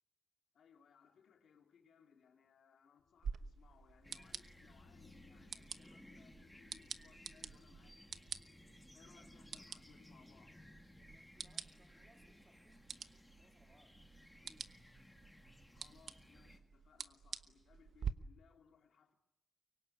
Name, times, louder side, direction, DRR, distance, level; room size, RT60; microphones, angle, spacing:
voice 1, 0.5-8.4 8.9-10.6 15.7-19.1, left 7 dB, 80° left, 3.1 m, -67 dB
sound 1, 3.0-14.8, left 6 dB, 55° left, 1.3 m, -71 dB
sound 2, 3.2-18.1, right 6 dB, 65° right, 1.1 m, -49 dB
sound 3, 4.0-16.6, left 1 dB, 5° left, 1.6 m, -61 dB
voice 2, 11.0-14.0 14.4-14.9, right 1 dB, 15° right, 3.0 m, -71 dB
24.5 x 24.0 x 9.4 m
wide cardioid pair, 150°, 0 cm